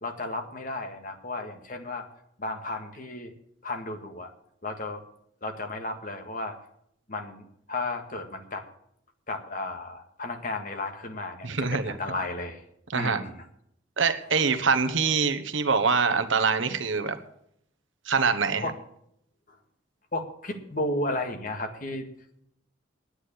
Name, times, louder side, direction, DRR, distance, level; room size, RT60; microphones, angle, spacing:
voice 1, 0.0-2.1 2.4-3.3 3.6-4.3 4.6-5.0 5.4-6.6 7.1-8.7 9.3-12.6 12.9-13.5 18.6-18.7 19.5-19.6 20.1-22.1, left 2 dB, 45° left, 5 dB, 1.7 m, -33 dB
voice 2, 11.4-11.9 12.9-13.2 14.0-17.2 18.1-18.7, right 5 dB, 80° right, 10 dB, 1.2 m, -24 dB
9.7 x 9.7 x 8.5 m, 0.73 s
head